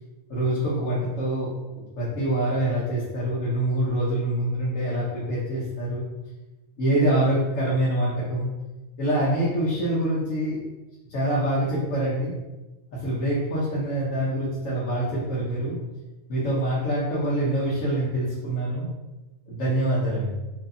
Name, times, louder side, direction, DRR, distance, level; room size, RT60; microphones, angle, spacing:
voice 1, 0.3-6.0 6.8-8.5 9.0-10.6 11.1-12.3 12.9-15.7 16.3-18.9 19.5-20.4, right 1 dB, 80° left, -7 dB, 1.2 m, -25 dB
4.5 x 2.8 x 2.6 m, 1.1 s
omnidirectional pair, 1.3 m